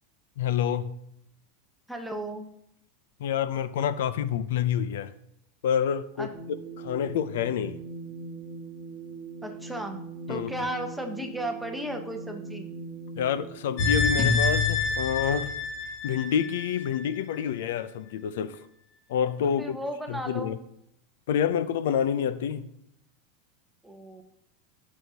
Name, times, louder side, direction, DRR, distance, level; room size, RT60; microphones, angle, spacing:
voice 1, 0.4-1.0 3.2-5.1 5.6-6.3 6.8-7.8 10.3-10.5 13.2-15.5 16.0-18.7 19.1-19.8 20.1-20.6 21.3-22.7, left 8 dB, 80° left, 0.5 m, -28 dB
voice 2, 1.9-2.5 6.2-6.3 9.4-10.0 10.3-12.7 19.4-20.6 23.8-24.2, right 1 dB, ahead, 1.0 m, -35 dB
sound 1, 6.3-14.3, right 4 dB, 20° left, 1.7 m, -41 dB
sound 2, 13.8-17.0 17.3-17.4, left 4 dB, 55° left, 2.0 m, -26 dB
12.5 x 6.3 x 2.8 m
supercardioid pair, 145°, 0 cm